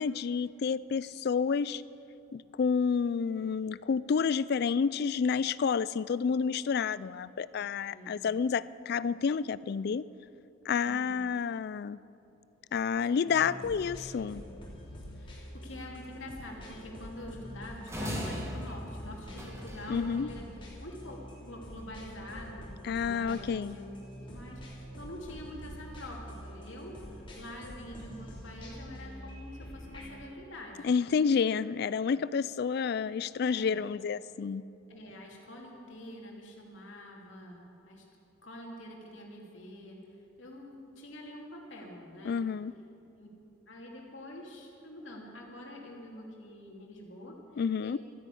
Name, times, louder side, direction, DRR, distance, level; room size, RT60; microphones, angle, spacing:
voice 1, 0.0-1.8 2.3-10.1 10.7-12.0 12.7-14.4 19.9-20.3 22.8-23.8 30.8-34.6 42.2-42.7 47.6-48.0, left 6 dB, 50° left, 18 dB, 0.3 m, -29 dB
voice 2, 10.8-11.2 13.1-13.3 15.1-20.4 20.8-24.0 24.3-31.0 33.4-33.8 34.9-38.0 38.4-40.0 40.4-42.5 43.2-43.3 43.7-48.0, left 1 dB, 70° left, -1 dB, 2.7 m, -46 dB
sound 1, 13.2-30.2, equal, 25° left, 3.2 m, -46 dB
sound 2, 17.9-20.1, equal, 15° right, 1.6 m, -38 dB
13.5 x 10.5 x 8.4 m, 2.7 s
head